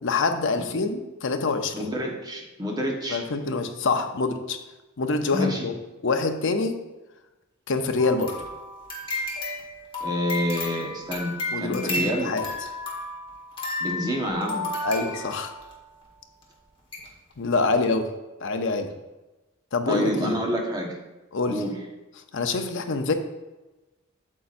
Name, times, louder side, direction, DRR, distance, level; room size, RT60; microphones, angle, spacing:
voice 1, 0.0-1.9 3.1-4.6 5.0-5.7 6.0-6.8 7.7-8.5 11.5-12.4 14.8-15.6 17.4-18.1 18.4-18.9 19.7-20.4 21.3-21.6 22.3-23.1, left 3 dB, 65° left, 7 dB, 0.7 m, -26 dB
voice 2, 1.7-3.2 5.3-5.6 10.0-12.3 13.8-14.7 19.9-21.0 21.5-21.8, equal, 20° right, -1 dB, 1.2 m, -28 dB
sound 1, 8.0-15.7 16.4-16.5 16.9-17.1 17.4-17.5, left 2 dB, 25° left, 1.5 m, -33 dB
8.4 x 7.0 x 2.6 m, 1.1 s
head